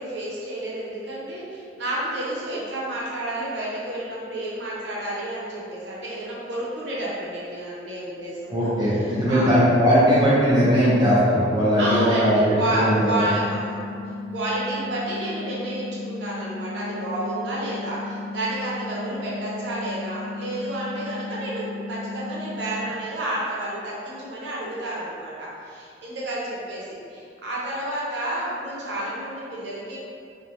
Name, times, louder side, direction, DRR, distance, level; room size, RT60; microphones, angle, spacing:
voice 1, 0.0-9.5 11.8-13.9 14.3-30.0, right 1 dB, 65° right, -6 dB, 0.7 m, -30 dB
voice 2, 8.5-13.2, equal, 20° right, -10 dB, 0.4 m, -19 dB
sound 1, 12.9-22.9, left 2 dB, 80° left, 0.4 m, -35 dB
3.1 x 2.1 x 2.6 m, 2.4 s
head